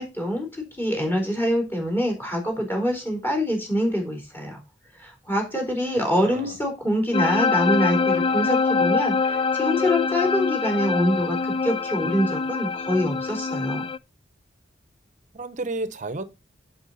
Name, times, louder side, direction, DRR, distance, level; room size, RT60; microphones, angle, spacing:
voice 1, 0.0-4.6 5.0-13.9, equal, 10° left, 3.9 m, -25 dB
voice 2, 6.1-6.6 15.3-16.2, right 2 dB, 45° right, 0.9 m, -31 dB
sound 1, 7.1-14.0, left 4 dB, 30° left, 0.4 m, -24 dB
8.0 x 7.4 x 4.0 m
head